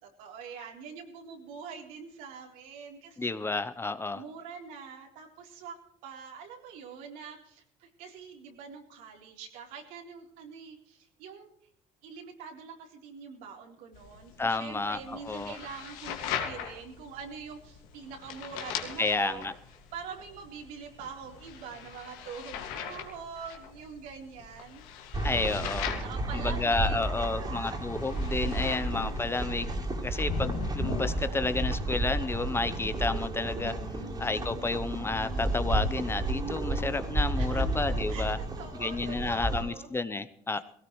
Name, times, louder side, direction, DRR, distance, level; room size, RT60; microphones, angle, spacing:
voice 1, 0.0-3.3 4.1-11.5 12.0-19.5 19.9-24.9 26.0-27.8 28.4-29.2 34.0-34.6 37.4-37.7 38.1-39.9, right 6 dB, 80° right, 1 dB, 3.9 m, -44 dB
voice 2, 3.2-4.2 14.4-15.6 19.0-19.5 25.2-25.9 26.3-29.7 30.0-33.7 34.2-38.4 38.8-40.6, left 3 dB, 15° left, 12 dB, 0.9 m, -31 dB
sound 1, 13.9-31.4, left 7 dB, 85° left, 2.2 m, -40 dB
sound 2, 25.1-39.6, right 2 dB, 30° right, 3.3 m, -32 dB
19.0 x 17.0 x 3.2 m, 0.69 s
supercardioid pair, 95°, 14 cm